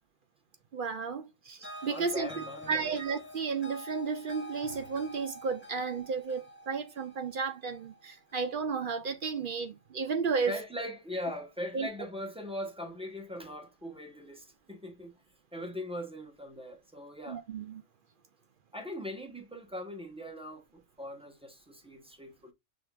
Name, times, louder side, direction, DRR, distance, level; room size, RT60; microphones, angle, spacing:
voice 1, 0.7-10.5 11.7-11.9 17.3-17.7, right 5 dB, 55° right, 0.6 m, -33 dB
sound 1, 1.6-8.8, left 1 dB, 10° left, 0.6 m, -47 dB
voice 2, 1.8-3.0 10.4-15.2 15.5-17.4 18.7-22.5, left 1 dB, 5° right, 1.0 m, -40 dB
6.0 x 3.4 x 2.4 m
omnidirectional pair, 1.3 m